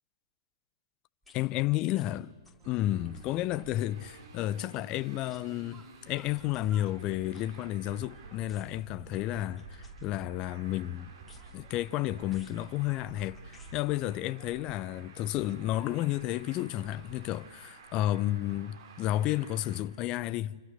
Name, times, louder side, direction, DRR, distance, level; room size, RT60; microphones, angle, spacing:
sound 1, 1.2-1.4 1.9-2.1 2.4-2.7 3.0-3.4 4.0-4.2 4.5-4.7 5.3-5.4 6.1-8.0 8.5-8.9 9.6-10.5 11.2-11.7 12.3-12.6 13.3-13.7 14.5-14.6, left 4 dB, 5° left, 5.0 m, -60 dB
voice 1, 1.3-2.3 2.6-11.1 11.5-20.6, left 14 dB, 35° left, 0.7 m, -32 dB
sound 2, 2.5-17.1, right 1 dB, 10° right, 2.9 m, -62 dB
Traffic noise roadway noise, 2.6-19.8, right 4 dB, 60° right, 4.1 m, -52 dB
27.5 x 27.5 x 6.6 m
hypercardioid pair, 115°, 3 cm